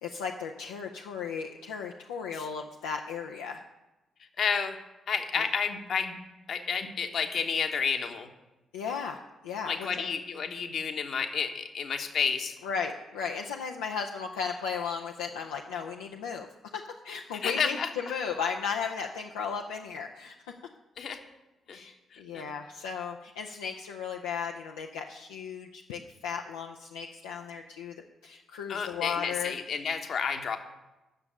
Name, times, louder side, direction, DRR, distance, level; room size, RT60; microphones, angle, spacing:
voice 1, 0.0-3.6 5.4-5.5 8.7-10.0 12.6-16.5 16.7-20.3 21.7-29.5, left 6 dB, 70° left, 1 dB, 0.5 m, -35 dB
voice 2, 4.4-4.8 5.1-6.1 6.5-8.3 9.6-12.6 17.4-17.9 21.0-21.2 21.7-21.8 22.1-22.4 28.7-30.6, left 6 dB, 50° left, 7 dB, 1.1 m, -30 dB
9.0 x 6.9 x 8.7 m, 1.0 s
figure-of-eight pair, 40°, 0 cm